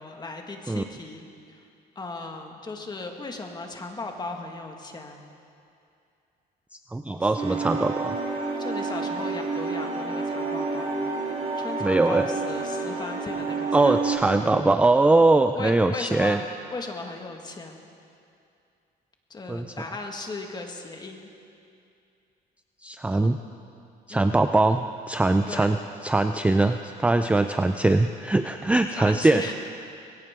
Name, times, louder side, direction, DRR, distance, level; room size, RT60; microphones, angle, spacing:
voice 1, 0.0-1.6 1.9-5.2 7.1-7.3 8.6-11.1 11.5-14.0 15.5-16.4 16.7-17.8 19.3-21.3 23.1-23.3 24.1-24.5 25.5-25.7 28.9-29.5, left 3 dB, 25° left, 3 dB, 1.8 m, -37 dB
voice 2, 6.9-8.2 11.8-12.3 13.7-16.4 19.5-19.7 22.8-23.4 24.1-25.8 26.0-29.4, right 2 dB, 5° right, 8 dB, 0.4 m, -21 dB
sound 1, 7.4-14.2, right 4 dB, 35° right, 4.9 m, -29 dB
21.0 x 17.5 x 3.7 m, 2.5 s
cardioid pair, 110°, 17 cm